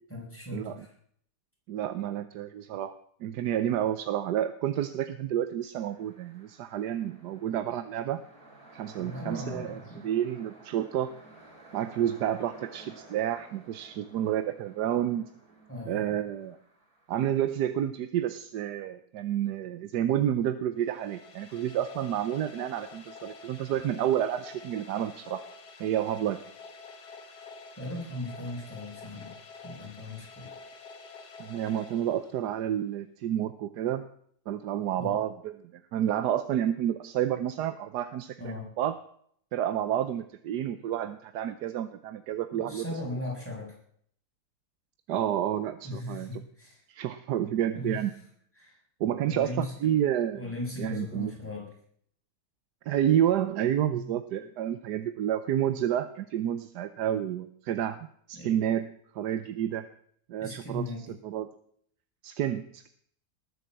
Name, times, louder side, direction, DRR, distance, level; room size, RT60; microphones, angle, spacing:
voice 1, 0.1-0.9 9.0-10.1 15.7-16.2 27.8-29.4 29.6-30.5 35.0-35.2 38.4-38.7 42.5-43.8 45.8-46.8 47.7-48.0 48.5-48.8 49.2-50.0 50.3-51.7 53.9-54.1 58.3-58.5 60.4-61.2, left 1 dB, 5° left, -3 dB, 6.8 m, -38 dB
voice 2, 1.7-3.0 3.2-8.2 8.7-11.1 11.7-15.3 15.9-16.6 17.1-25.4 25.8-26.4 31.4-34.0 34.5-35.5 35.9-39.0 39.5-42.8 45.1-46.4 46.9-48.1 49.0-50.4 50.8-51.3 52.9-58.9 59.1-59.9 60.3-60.8 61.2-61.5 62.2-62.9, right 10 dB, 90° right, 11 dB, 1.4 m, -30 dB
sound 1, 5.8-17.1, right 2 dB, 65° right, 4.9 m, -53 dB
sound 2, 20.8-32.7, left 4 dB, 75° left, 2.1 m, -48 dB
19.5 x 8.9 x 7.5 m, 0.65 s
omnidirectional pair, 1.7 m